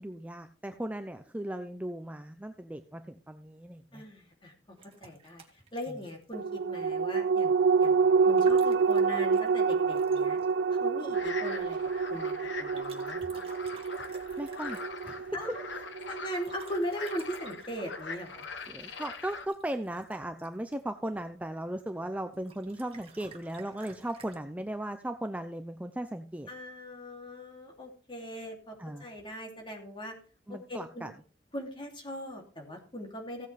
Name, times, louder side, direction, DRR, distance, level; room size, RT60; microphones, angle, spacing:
voice 1, 0.0-4.1 5.9-6.0 14.4-14.8 15.0-15.4 18.7-26.5 28.8-29.1 30.5-31.1, right 1 dB, 10° right, 7 dB, 0.6 m, -37 dB
voice 2, 3.9-5.4 5.7-7.5 7.8-10.4 10.7-11.8 12.1-12.3 12.6-13.4 15.3-15.5 16.1-18.5 26.5-28.7 29.0-30.1 30.5-31.1 31.5-33.5, equal, 30° left, 2 dB, 2.9 m, -39 dB
sound 1, 4.8-6.6 8.2-10.5 12.7-15.1 16.3-20.9 22.3-24.4, right 4 dB, 30° right, 2.0 m, -54 dB
sound 2, 6.3-17.1 17.5-17.6, right 5 dB, 75° right, 0.4 m, -28 dB
sound 3, 11.1-19.5, left 4 dB, 85° left, 1.3 m, -42 dB
16.0 x 8.0 x 3.4 m, 0.39 s
head